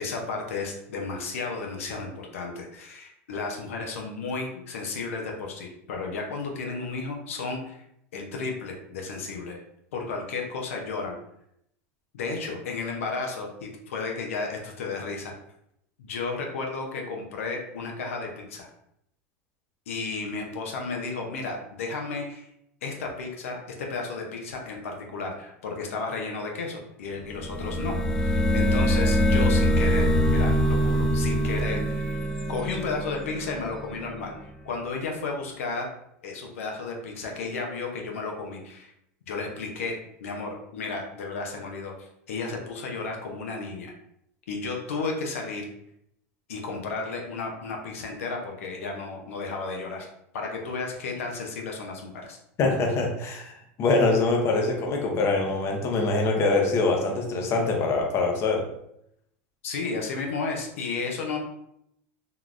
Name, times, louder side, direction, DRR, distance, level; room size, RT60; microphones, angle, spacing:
voice 1, 0.0-7.8 8.1-9.6 9.9-11.1 12.1-15.3 16.0-18.7 19.9-22.5 22.8-35.9 36.2-38.9 39.3-43.9 44.5-45.7 46.5-50.1 50.3-52.4 59.6-61.4, left 4 dB, 90° left, 1 dB, 0.6 m, -33 dB
sound 1, 27.3-34.0, equal, 5° left, 0.3 m, -24 dB
voice 2, 52.6-58.7, left 3 dB, 40° left, 1 dB, 0.7 m, -24 dB
3.7 x 2.2 x 2.4 m, 0.76 s
supercardioid pair, 120°, 7 cm